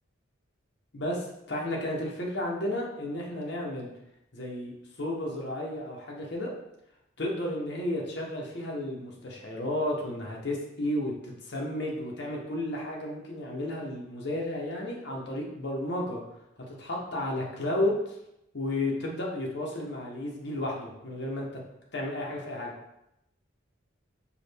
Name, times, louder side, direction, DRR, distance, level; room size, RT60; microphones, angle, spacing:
voice 1, 0.9-3.9 4.3-4.7 5.0-6.5 7.2-16.2 16.7-18.2 18.5-21.5 21.9-22.7, left 1 dB, 55° left, -2 dB, 0.8 m, -32 dB
4.7 x 2.2 x 3.3 m, 0.85 s
head